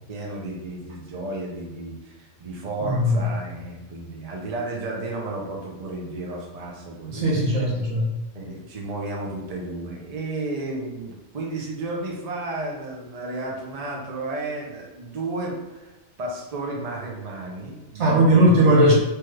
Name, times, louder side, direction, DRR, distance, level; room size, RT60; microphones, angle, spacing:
voice 1, 0.1-7.3 8.3-18.4, right 2 dB, 50° right, -1 dB, 0.5 m, -33 dB
voice 2, 2.8-3.2 7.1-8.1 18.0-18.9, right 1 dB, 70° right, -5 dB, 1.2 m, -18 dB
3.1 x 2.3 x 3.2 m, 1.1 s
omnidirectional pair, 1.3 m